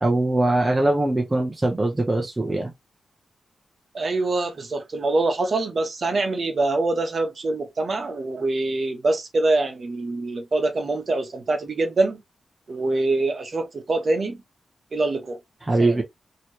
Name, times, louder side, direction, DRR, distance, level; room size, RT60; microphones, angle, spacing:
voice 1, 0.0-2.7 15.7-16.0, right 2 dB, 15° right, 0.6 m, -21 dB
voice 2, 3.9-12.2 12.7-14.4 14.9-15.4 15.8-16.0, right 2 dB, 45° right, 0.9 m, -24 dB
3.1 x 2.8 x 2.8 m
wide cardioid pair, 160°, 0 cm